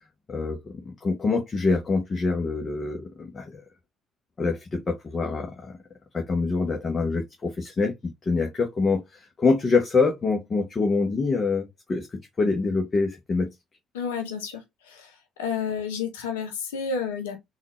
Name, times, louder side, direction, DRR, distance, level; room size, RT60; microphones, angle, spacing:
voice 1, 0.3-3.6 4.4-5.7 6.1-13.5, left 4 dB, 35° left, 0.8 m, -25 dB
voice 2, 13.9-14.6 14.9-15.1 15.4-17.4, left 6 dB, 80° left, 0.6 m, -30 dB
3.7 x 2.4 x 3.0 m
hypercardioid pair, 50°, 0 cm